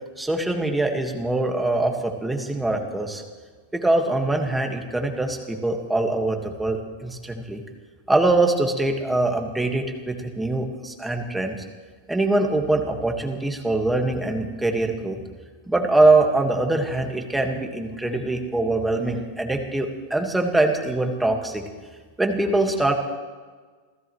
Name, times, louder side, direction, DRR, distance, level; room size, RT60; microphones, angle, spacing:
voice 1, 0.2-3.2 3.7-7.6 8.1-11.5 12.1-15.2 15.7-21.6 22.2-22.9, right 2 dB, 5° right, 3 dB, 1.7 m, -23 dB
29.0 x 15.0 x 3.2 m, 1.5 s
supercardioid pair, 165°, 0 cm